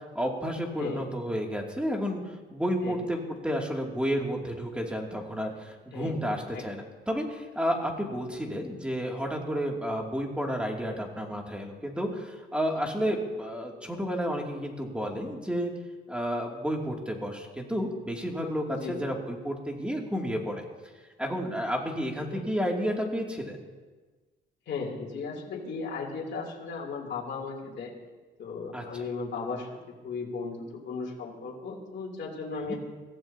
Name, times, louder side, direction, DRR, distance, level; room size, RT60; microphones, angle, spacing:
voice 1, 0.1-3.2 3.4-15.7 16.1-20.6 21.2-23.6 28.7-28.8 32.6-32.8, equal, 5° right, 0 dB, 2.7 m, -31 dB
voice 2, 5.9-6.6 8.4-8.6 13.0-13.1 18.7-19.0 22.3-22.4 24.7-27.9 28.4-29.8 30.0-32.8, left 4 dB, 65° left, -3 dB, 3.2 m, -36 dB
23.0 x 15.5 x 2.9 m, 1.3 s
cardioid pair, 90°, 20 cm